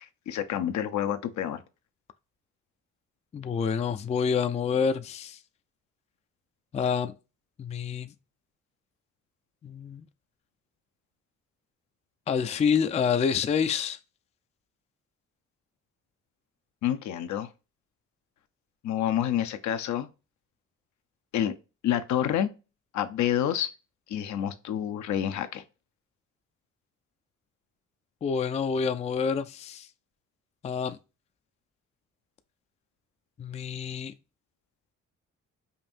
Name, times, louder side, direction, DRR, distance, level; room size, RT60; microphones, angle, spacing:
voice 1, 0.0-1.6 16.8-17.5 18.8-20.1 21.3-21.5 21.8-22.5 22.9-23.7 24.1-25.6, left 10 dB, 70° left, 0.6 m, -28 dB
voice 2, 3.3-5.4 6.7-7.1 7.6-8.1 9.6-10.1 12.3-14.0 28.2-29.9 30.6-31.0 33.4-34.1, left 6 dB, 25° left, 0.3 m, -27 dB
5.2 x 2.6 x 2.5 m
cardioid pair, 90°, 30 cm